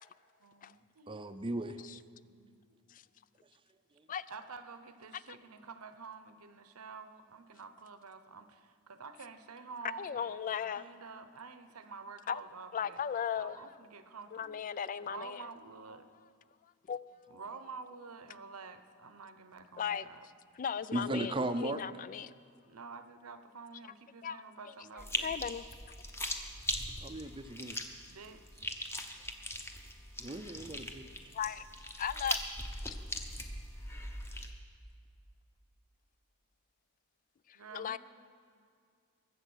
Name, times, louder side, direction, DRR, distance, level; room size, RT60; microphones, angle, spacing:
voice 1, 0.4-2.6 4.3-13.0 13.3-16.1 17.3-20.3 22.6-25.3 28.1-28.7 37.5-38.0, right 4 dB, 85° right, 10 dB, 0.9 m, -49 dB
voice 2, 1.1-1.8 20.9-21.8 27.0-27.8 30.2-31.1, right 1 dB, 25° right, 10 dB, 0.6 m, -36 dB
voice 3, 10.0-10.8 12.3-12.4 12.7-13.6 14.3-15.5 16.9-17.3 19.8-20.1 20.6-22.3 24.2-24.4 25.2-25.6 31.3-31.7 32.0-32.4 37.5-38.0, left 8 dB, 40° left, 17 dB, 0.3 m, -37 dB
sound 1, 25.0-34.5, left 1 dB, 10° left, 0.9 m, -40 dB
22.0 x 7.6 x 6.3 m, 2.2 s
head